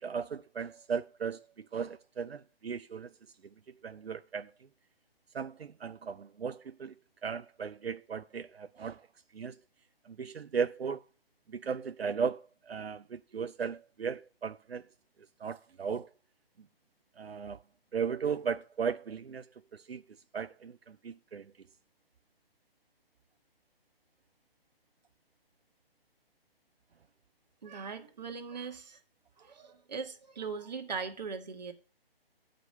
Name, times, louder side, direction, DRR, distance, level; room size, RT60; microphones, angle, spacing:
voice 1, 0.0-3.1 3.8-4.5 5.3-6.9 7.2-9.1 9.3-9.6 10.0-11.0 11.5-14.8 15.4-16.1 17.2-17.6 17.9-20.0 20.3-21.5, right 6 dB, 85° right, 0.5 m, -36 dB
voice 2, 27.6-29.0 29.4-31.7, right 5 dB, 45° right, 1.3 m, -40 dB
8.2 x 5.1 x 6.5 m
figure-of-eight pair, 140°, 30 cm